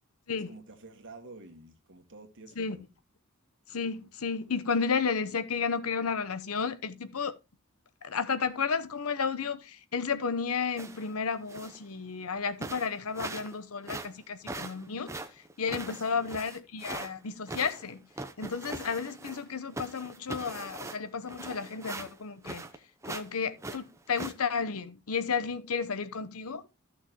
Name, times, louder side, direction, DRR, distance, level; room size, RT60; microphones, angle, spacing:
voice 1, 0.5-2.9 16.1-16.3, right 3 dB, 60° right, 1.9 m, -49 dB
voice 2, 3.7-7.4 8.0-15.2 15.6-18.0 18.4-22.6 23.1-26.6, left 5 dB, 75° left, 0.9 m, -32 dB
sound 1, 10.8-11.1 11.5-11.8 12.3-12.4 12.6-13.6 13.8-17.1 17.5-19.5 19.7-22.8 23.0-23.3 23.6-24.3, right 2 dB, 15° right, 0.8 m, -41 dB
14.0 x 6.3 x 3.0 m
head